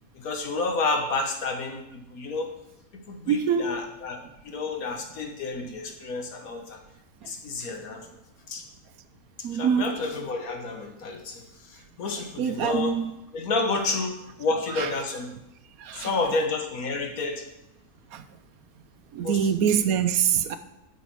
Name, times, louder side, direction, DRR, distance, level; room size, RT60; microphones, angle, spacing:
voice 1, 0.2-2.5 3.1-6.8 7.2-8.1 8.5-8.6 9.4-13.0 13.3-15.3 15.9-17.5 19.2-19.5, left 3 dB, 70° left, 1.7 m, -30 dB
voice 2, 3.3-3.7 7.2-7.3 9.4-10.0 12.4-13.1 14.8-14.9 15.8-16.1 18.1-18.2 19.1-20.6, right 8 dB, 70° right, 1.1 m, -24 dB
8.1 x 5.9 x 6.1 m
omnidirectional pair, 1.6 m